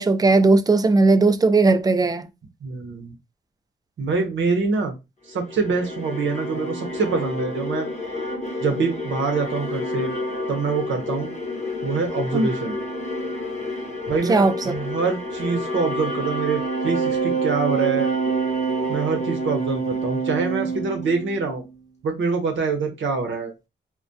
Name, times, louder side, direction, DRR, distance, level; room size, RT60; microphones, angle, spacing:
voice 1, 0.0-2.3 12.3-12.5 14.3-14.7, right 3 dB, 20° right, 0.3 m, -17 dB
voice 2, 2.6-3.1 4.0-4.9 5.3-7.9 8.6-10.1 10.5-11.3 11.8-12.7 14.1-18.1 18.9-21.6 22.0-23.5, right 4 dB, 80° right, 0.7 m, -25 dB
sound 1, 5.4-21.7, right 2 dB, 35° left, 0.7 m, -28 dB
2.2 x 2.2 x 2.6 m
cardioid pair, 80°, 20 cm